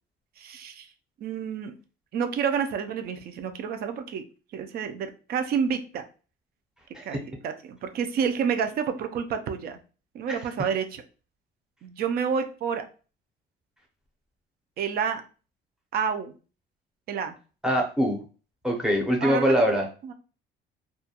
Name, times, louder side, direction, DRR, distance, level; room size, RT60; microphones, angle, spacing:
voice 1, 0.4-0.9 1.2-1.7 2.1-4.2 4.5-6.0 7.0-9.8 10.1-11.0 11.8-12.9 14.8-15.2 15.9-16.3 17.1-17.4 19.2-19.5 20.0-20.1, right 7 dB, 50° right, 7 dB, 0.4 m, -29 dB
voice 2, 17.6-18.2 18.6-19.9, equal, 5° right, 0 dB, 0.6 m, -23 dB
2.3 x 2.1 x 2.8 m, 0.37 s
cardioid pair, 150°, 20 cm